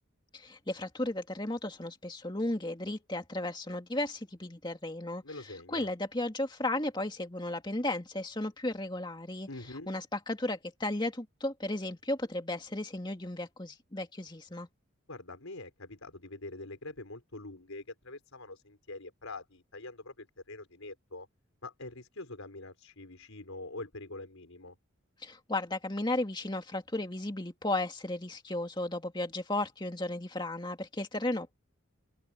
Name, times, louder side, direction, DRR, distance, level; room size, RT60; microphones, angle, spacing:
voice 1, 0.3-5.2 5.7-9.5 9.9-14.7 25.2-31.6, left 1 dB, 20° left, 2.3 m, -34 dB
voice 2, 5.2-5.9 9.5-9.9 15.1-21.3 21.6-24.8, left 2 dB, 80° left, 4.7 m, -44 dB
open air
head